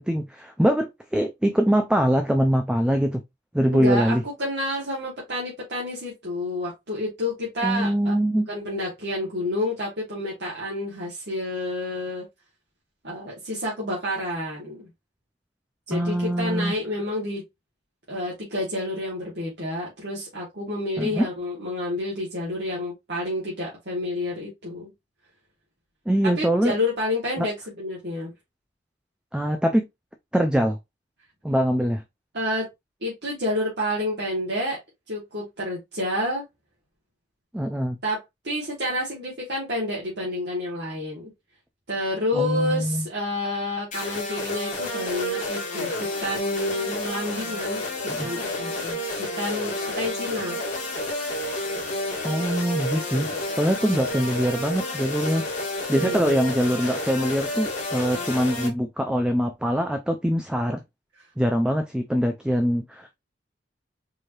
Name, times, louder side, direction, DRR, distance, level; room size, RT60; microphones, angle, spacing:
voice 1, 0.0-3.2 3.5-4.2 7.6-8.5 15.9-16.7 21.0-21.3 26.1-26.8 27.4-27.5 29.3-29.8 30.3-30.8 31.4-32.0 37.5-38.0 42.3-43.0 48.1-48.3 52.2-53.3 53.6-60.8 61.4-63.1, equal, 5° right, 0.4 m, -23 dB
voice 2, 3.7-8.1 8.5-12.2 13.0-14.9 15.9-17.4 18.1-24.9 26.2-28.3 32.3-32.7 33.0-34.8 35.1-36.4 38.0-41.3 41.9-47.8 48.2-49.0 49.4-50.6 53.3-53.5 56.0-56.3, left 1 dB, 65° right, 1.6 m, -29 dB
sound 1, 43.9-58.7, left 1 dB, 45° left, 1.3 m, -30 dB
4.7 x 3.0 x 2.6 m
head